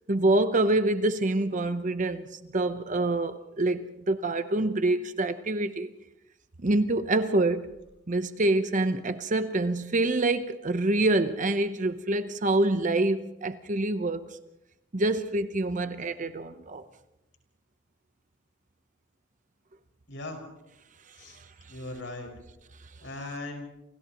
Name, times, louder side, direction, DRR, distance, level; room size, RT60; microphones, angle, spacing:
voice 1, 0.1-5.9 6.6-7.7 8.1-14.3 14.9-16.8, right 2 dB, 45° right, 0.9 m, -26 dB
voice 2, 20.1-20.4 21.2-21.4 21.7-22.3 23.0-23.7, left 2 dB, 75° left, 5.8 m, -38 dB
30.0 x 28.5 x 3.0 m
head